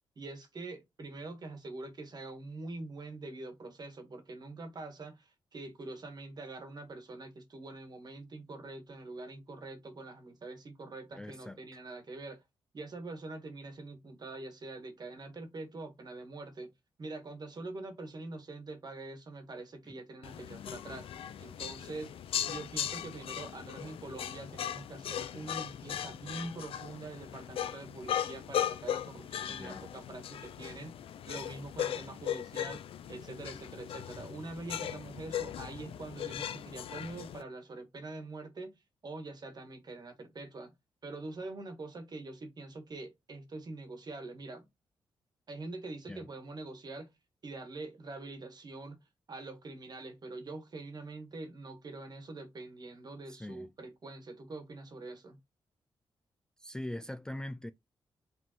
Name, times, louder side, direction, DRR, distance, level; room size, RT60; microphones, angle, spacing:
voice 1, 0.1-12.4 12.7-16.7 17.0-21.1 21.4-22.1 22.5-31.0 31.3-32.8 33.1-38.7 39.0-40.7 41.0-44.7 45.5-47.1 47.4-49.0 49.3-55.4, right 2 dB, 45° right, 1.5 m, -44 dB
voice 2, 11.1-11.6 29.6-29.9 46.1-46.3 53.3-53.7 56.6-57.7, left 1 dB, 10° left, 0.3 m, -42 dB
sound 1, 20.2-37.4, left 10 dB, 80° left, 0.5 m, -38 dB
4.8 x 3.7 x 3.0 m
cardioid pair, 80°, 9 cm